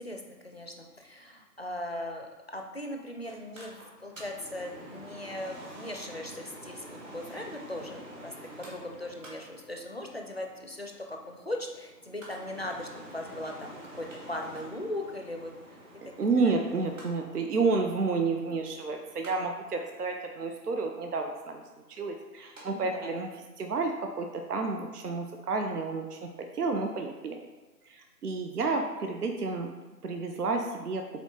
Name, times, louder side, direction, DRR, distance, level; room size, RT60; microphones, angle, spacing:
voice 1, 0.0-15.8 16.7-16.9 22.7-23.2, left 1 dB, 40° left, 3 dB, 0.6 m, -39 dB
Mechanical fan, 3.3-22.6 23.0-23.1, right 1 dB, 50° right, 1.9 m, -48 dB
voice 2, 16.2-21.6 21.9-23.3 23.6-26.3 26.5-27.4 27.9-29.7 30.0-31.0, right 4 dB, 65° right, 4 dB, 0.8 m, -30 dB
8.2 x 3.7 x 3.7 m, 1.2 s
figure-of-eight pair, 165°, 50 cm